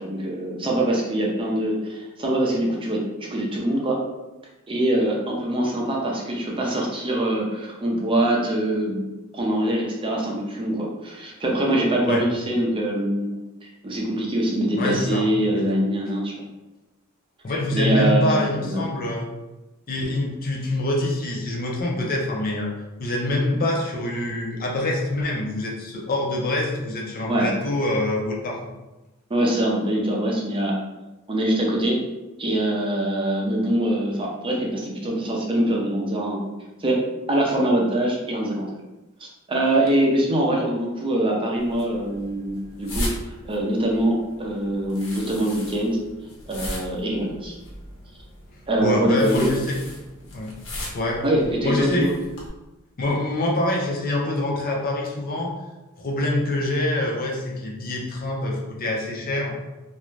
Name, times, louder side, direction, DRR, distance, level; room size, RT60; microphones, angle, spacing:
voice 1, 0.0-3.0 3.3-4.0 4.7-9.0 9.3-13.3 13.6-16.3 17.7-18.8 27.3-27.5 29.3-30.7 31.3-31.9 32.4-36.4 36.8-37.0 37.3-38.7 39.5-43.1 43.4-46.0 46.5-47.6 48.7-49.5 51.2-52.1, right 1 dB, 25° right, -2 dB, 0.6 m, -23 dB
voice 2, 14.8-15.6 17.4-19.3 19.9-22.7 23.0-28.6 48.8-49.8 50.3-50.5 50.9-51.2 51.6-52.1 53.0-55.5 56.0-59.5, left 1 dB, 40° left, -2 dB, 0.5 m, -25 dB
sound 1, 41.6-52.5, left 1 dB, 65° left, 0.8 m, -37 dB
2.5 x 2.2 x 3.1 m, 1.0 s
head